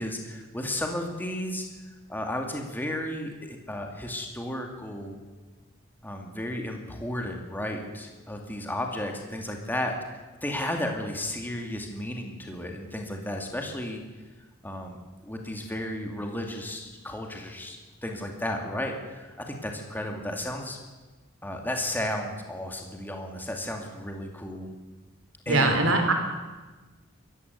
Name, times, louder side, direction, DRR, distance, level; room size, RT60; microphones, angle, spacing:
voice 1, 0.0-1.7 2.1-5.2 6.0-10.0 10.4-14.0 14.6-20.8 21.4-24.7 25.5-25.9, left 1 dB, 10° left, 2 dB, 2.3 m, -33 dB
voice 2, 25.5-26.1, right 2 dB, 85° right, 5 dB, 3.8 m, -22 dB
23.0 x 14.5 x 8.1 m, 1.3 s
head